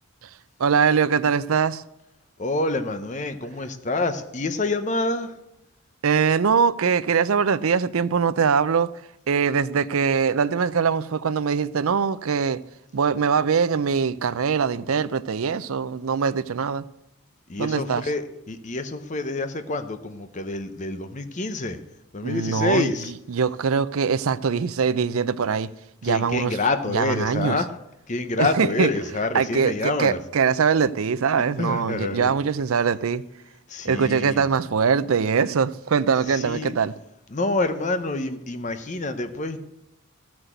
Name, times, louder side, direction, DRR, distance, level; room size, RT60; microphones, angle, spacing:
voice 1, 0.6-1.8 6.0-8.9 9.3-12.6 12.9-16.8 17.6-18.0 22.2-22.9 23.3-25.7 26.0-26.5 26.9-27.6 28.4-28.9 29.3-33.2 33.8-36.9, right 6 dB, 75° right, 0.5 m, -22 dB
voice 2, 2.4-5.3 17.5-21.8 22.1-23.1 26.0-27.7 28.1-30.2 31.6-32.3 33.7-34.5 36.3-36.7 37.3-39.6, left 2 dB, 35° left, 0.7 m, -27 dB
14.0 x 6.1 x 7.9 m
head